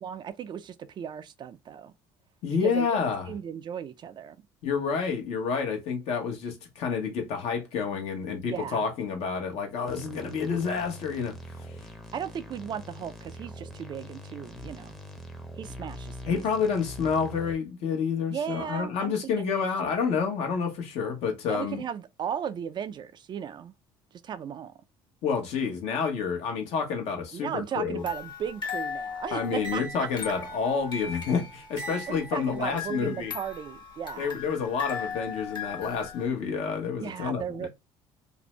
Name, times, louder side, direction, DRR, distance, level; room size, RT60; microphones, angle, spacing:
voice 1, 0.0-1.9 2.6-4.4 8.5-8.9 12.1-15.0 15.6-16.3 18.3-19.5 21.5-23.7 24.2-24.7 27.3-30.1 32.1-34.3 36.9-37.7, right 8 dB, 40° right, 0.3 m, -36 dB
voice 2, 2.4-3.3 4.6-11.4 16.3-21.8 25.2-28.0 29.3-33.3 34.2-37.7, left 6 dB, 70° left, 0.9 m, -29 dB
sound 1, 9.9-17.5, equal, 5° left, 0.6 m, -43 dB
sound 2, 28.0-36.3, left 5 dB, 45° left, 1.1 m, -38 dB
2.6 x 2.0 x 3.1 m
supercardioid pair, 80°, 11 cm